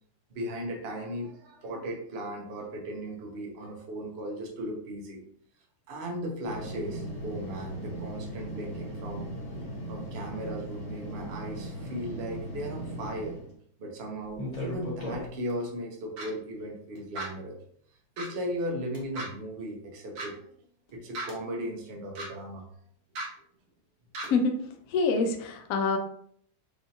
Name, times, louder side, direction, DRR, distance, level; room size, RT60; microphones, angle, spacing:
voice 1, 0.3-5.2 5.9-9.3 9.9-13.4 13.8-17.6 18.2-20.5 20.9-22.7 24.3-24.4, equal, 55° right, 1 dB, 0.7 m, -37 dB
sound 1, 6.4-13.5 14.3-15.5 16.9-17.0 18.9-19.0 20.9-21.4 24.2-24.3, equal, 35° left, 0.6 m, -38 dB
sound 2, 16.2-16.3 17.1-17.3 18.2-18.3 19.1-19.3 20.1-20.3 21.1-21.3 22.1-22.3 23.1-23.3 24.1-24.3, right 2 dB, 90° right, 1.8 m, -35 dB
voice 2, 24.9-26.0, left 4 dB, 75° left, 5 dB, 0.8 m, -25 dB
4.8 x 2.6 x 2.7 m, 0.63 s
omnidirectional pair, 2.1 m